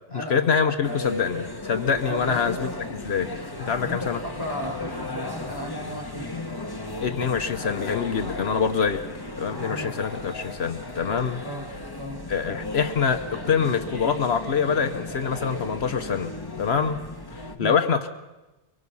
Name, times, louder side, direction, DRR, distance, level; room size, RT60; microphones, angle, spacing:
voice 1, 0.1-2.7 3.0-3.3 3.6-4.2 7.0-9.1 9.4-11.4 12.3-16.3 16.6-17.0 17.3-18.1, left 6 dB, 70° left, 8 dB, 1.2 m, -25 dB
sound 1, 0.8-17.6, left 2 dB, 20° left, 1.4 m, -35 dB
voice 2, 2.1-2.6 3.8-6.5 9.7-9.9 11.4-11.7 12.0-12.2 17.6-17.8, equal, 20° right, -2 dB, 5.2 m, -34 dB
23.5 x 23.5 x 5.5 m, 1.1 s
omnidirectional pair, 1.1 m